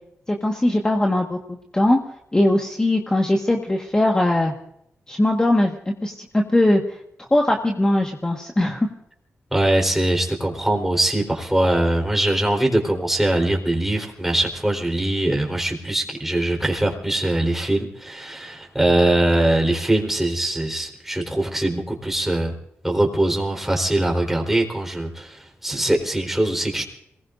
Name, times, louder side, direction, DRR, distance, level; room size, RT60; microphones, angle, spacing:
voice 1, 0.3-2.0 2.3-4.5 5.1-8.9, left 1 dB, 15° left, 1 dB, 1.5 m, -20 dB
voice 2, 9.5-22.5 22.8-26.8, right 1 dB, 5° right, 1 dB, 4.0 m, -22 dB
28.0 x 20.0 x 2.6 m, 0.74 s
wide cardioid pair, 110°, 5 cm